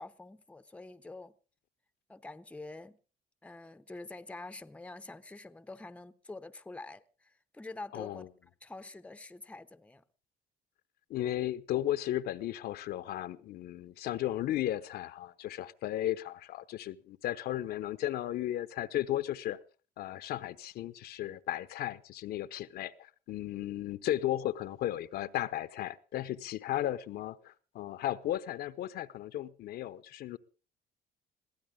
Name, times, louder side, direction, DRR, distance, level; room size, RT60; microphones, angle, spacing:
voice 1, 0.0-1.3 2.1-3.0 3.4-8.3 8.6-10.0, left 2 dB, 5° left, 0.7 m, -46 dB
voice 2, 7.9-8.3 11.1-19.6 20.0-30.4, left 13 dB, 70° left, 0.8 m, -35 dB
22.0 x 15.5 x 3.7 m
cardioid pair, 110°, 17 cm